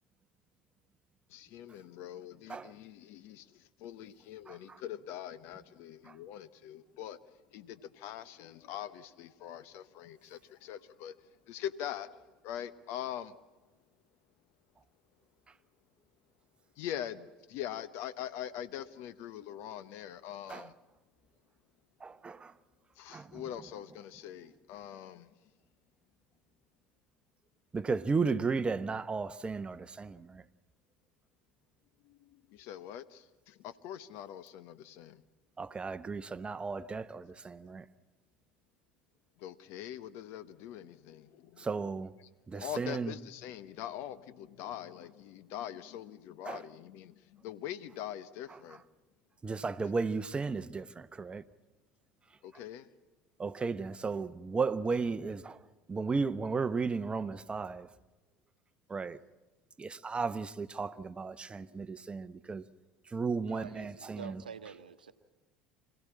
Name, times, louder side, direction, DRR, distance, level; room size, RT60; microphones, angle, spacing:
voice 1, 1.3-7.2 7.5-11.2 11.5-12.1 12.4-13.4 16.8-20.7 23.0-25.3 32.0-35.2 39.4-41.7 42.2-42.3 42.5-48.8 52.4-52.9, left 11 dB, 60° left, 0.9 m, -43 dB
voice 2, 4.5-4.8 6.1-6.2 20.5-20.7 22.0-22.5 23.1-23.4 27.7-30.4 35.6-37.8 41.6-42.1 42.5-43.1 46.5-46.6 49.4-51.4 53.4-55.6 55.9-57.9 58.9-59.2 59.8-62.6 63.1-64.4, right 4 dB, 25° right, 0.8 m, -34 dB
voice 3, 63.5-65.1, right 6 dB, 90° right, 0.9 m, -47 dB
26.0 x 16.0 x 8.6 m
hypercardioid pair, 70°, 5 cm